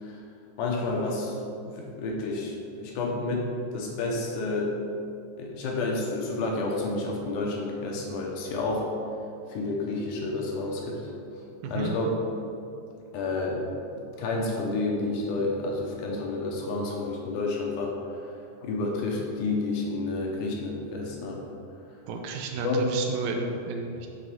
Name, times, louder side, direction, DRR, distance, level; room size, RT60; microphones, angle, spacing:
voice 1, 0.6-1.4 1.7-4.7 5.4-8.9 9.5-11.1 11.6-12.1 13.1-13.6 13.9-18.0 18.6-21.4 22.6-22.9, left 3 dB, 75° left, -1 dB, 2.2 m, -30 dB
voice 2, 22.1-24.1, right 4 dB, 85° right, 2 dB, 1.6 m, -32 dB
6.5 x 3.8 x 5.8 m, 2.6 s
omnidirectional pair, 3.8 m